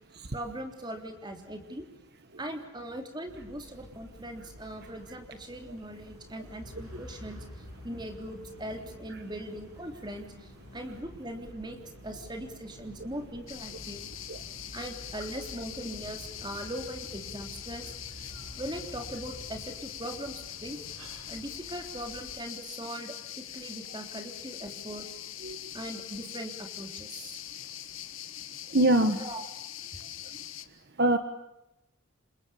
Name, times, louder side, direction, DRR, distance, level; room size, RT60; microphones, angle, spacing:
voice 1, 0.3-1.9 2.4-14.0 14.7-18.0 18.6-20.8 21.3-25.3 25.7-27.4 29.1-29.4, right 1 dB, 20° right, 4 dB, 3.5 m, -40 dB
sound 1, 3.3-22.4, equal, 90° right, 7.7 m, -52 dB
sound 2, 6.6-19.7, left 1 dB, 35° left, 7.0 m, -50 dB
sound 3, 13.5-30.6, left 12 dB, 65° left, 1.7 m, -43 dB
voice 2, 28.7-29.2 31.0-31.2, right 1 dB, 50° right, 8 dB, 1.5 m, -24 dB
29.5 x 26.0 x 7.1 m, 0.91 s
head